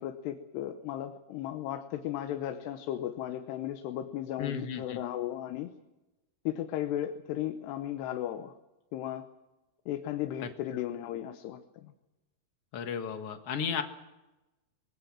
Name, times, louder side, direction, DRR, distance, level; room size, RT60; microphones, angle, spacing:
voice 1, 0.0-5.7 6.5-8.5 8.9-9.3 9.9-11.9, left 12 dB, 85° left, 7 dB, 3.1 m, -35 dB
voice 2, 4.4-5.0 12.7-13.8, left 7 dB, 55° left, 6 dB, 1.8 m, -34 dB
24.0 x 21.0 x 7.4 m, 1.0 s
omnidirectional pair, 4.7 m